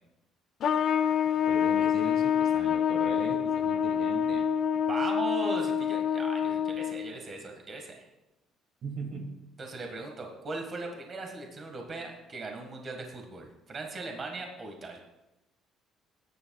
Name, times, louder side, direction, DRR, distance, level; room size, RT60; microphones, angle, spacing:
Trumpet, 0.6-7.1, left 8 dB, 45° left, 0.5 m, -27 dB
voice 1, 1.5-4.4 8.8-9.3, right 3 dB, 45° right, 2 dB, 1.6 m, -40 dB
voice 2, 4.9-8.1 9.6-15.0, right 3 dB, 25° right, 2 dB, 1.6 m, -38 dB
20.0 x 10.0 x 2.3 m, 0.94 s
cardioid pair, 175°, 0 cm